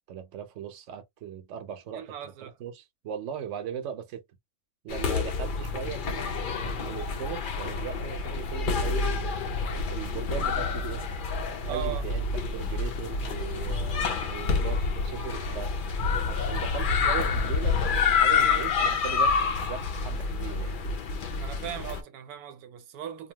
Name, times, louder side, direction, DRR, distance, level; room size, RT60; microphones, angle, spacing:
voice 1, 0.1-4.2 4.8-11.0 11.7-15.8 16.1-20.8, right 8 dB, 60° right, 1.0 m, -39 dB
voice 2, 1.9-2.6 11.7-12.1 18.3-18.6 21.4-23.3, right 10 dB, 85° right, 1.1 m, -38 dB
sound 1, 4.9-22.0, left 5 dB, 75° left, 0.4 m, -28 dB
2.8 x 2.2 x 2.8 m
omnidirectional pair, 1.5 m